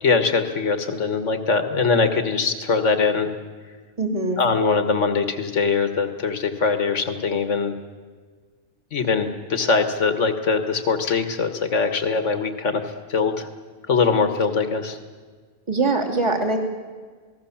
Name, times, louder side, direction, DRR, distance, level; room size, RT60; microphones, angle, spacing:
voice 1, 0.0-3.3 4.4-7.7 8.9-13.5 13.9-15.0, left 4 dB, 80° left, 8 dB, 2.0 m, -22 dB
voice 2, 4.0-4.4 15.7-16.6, right 3 dB, 25° right, 2 dB, 2.8 m, -22 dB
29.0 x 19.5 x 7.3 m, 1.5 s
omnidirectional pair, 1.3 m